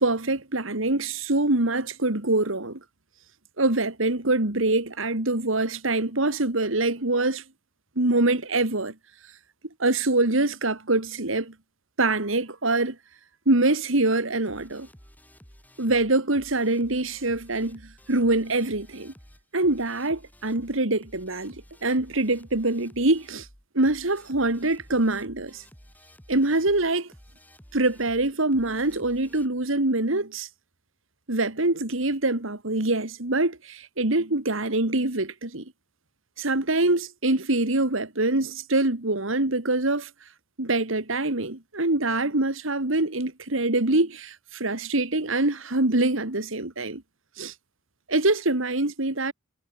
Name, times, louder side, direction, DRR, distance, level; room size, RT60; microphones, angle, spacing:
voice 1, 0.0-2.8 3.6-7.4 8.0-8.9 9.8-11.5 12.0-13.0 13.5-14.9 15.8-17.8 18.1-19.1 19.5-23.5 23.7-25.6 26.3-27.1 27.7-30.5 31.3-35.6 36.4-40.1 40.6-47.0 47.4-47.5 48.1-49.3, right 2 dB, 70° right, 2.4 m, -24 dB
sound 1, 14.5-29.5, equal, 10° left, 5.3 m, -52 dB
head